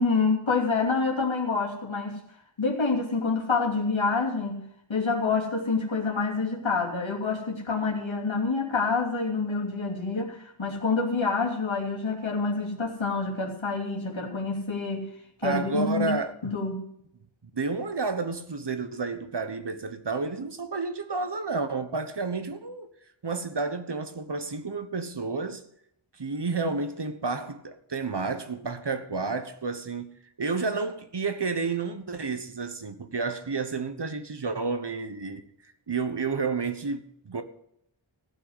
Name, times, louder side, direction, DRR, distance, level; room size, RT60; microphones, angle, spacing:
voice 1, 0.0-2.2 2.6-4.6 4.9-15.1 15.4-16.1 16.4-16.9, left 4 dB, 70° left, 3.0 m, -27 dB
voice 2, 15.4-16.3 17.5-22.9 23.2-25.6 26.2-35.5 35.9-37.4, right 4 dB, 55° right, 1.2 m, -31 dB
15.5 x 5.7 x 8.0 m
wide cardioid pair, 50°, 49 cm